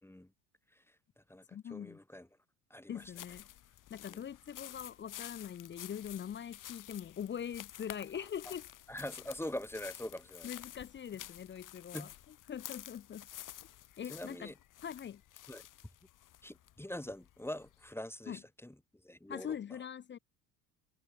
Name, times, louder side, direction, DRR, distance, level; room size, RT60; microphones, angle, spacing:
voice 1, 0.7-2.3 2.7-3.1 4.1-4.3 8.9-10.5 11.9-12.1 14.1-14.5 15.5-15.6 16.4-19.6, left 1 dB, 5° left, 4.1 m, -44 dB
voice 2, 1.5-2.0 2.9-3.5 3.9-8.6 10.4-12.1 12.5-13.3 14.0-14.5 14.8-15.2 18.3-18.4 19.3-20.2, left 8 dB, 25° left, 0.9 m, -42 dB
sound 1, 3.0-17.9, left 13 dB, 40° left, 2.5 m, -51 dB
figure-of-eight pair, 65°, 48 cm